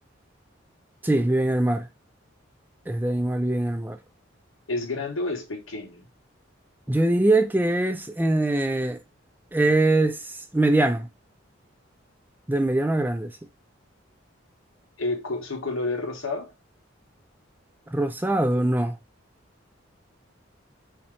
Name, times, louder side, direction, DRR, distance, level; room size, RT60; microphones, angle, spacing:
voice 1, 1.0-1.9 2.9-4.0 6.9-9.0 9.5-11.1 12.5-13.3 17.9-18.9, right 2 dB, 10° right, 0.4 m, -22 dB
voice 2, 4.7-6.0 15.0-16.5, left 3 dB, 85° left, 1.4 m, -30 dB
5.6 x 2.8 x 3.3 m
head